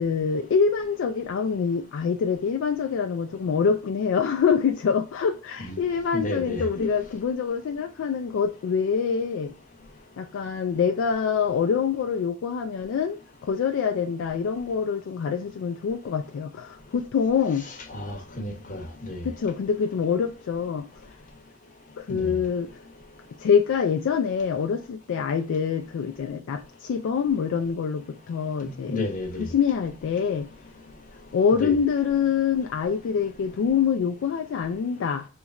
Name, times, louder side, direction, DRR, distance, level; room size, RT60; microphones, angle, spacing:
voice 1, 0.0-9.5 10.2-17.7 19.2-20.9 22.0-22.7 23.4-29.0 29.4-30.5 31.3-35.3, left 6 dB, 65° left, 0.3 m, -25 dB
voice 2, 6.1-6.9 17.9-19.2 22.1-22.3 28.6-29.5 31.6-31.8, left 2 dB, 40° left, 0.8 m, -32 dB
3.0 x 2.4 x 4.1 m
head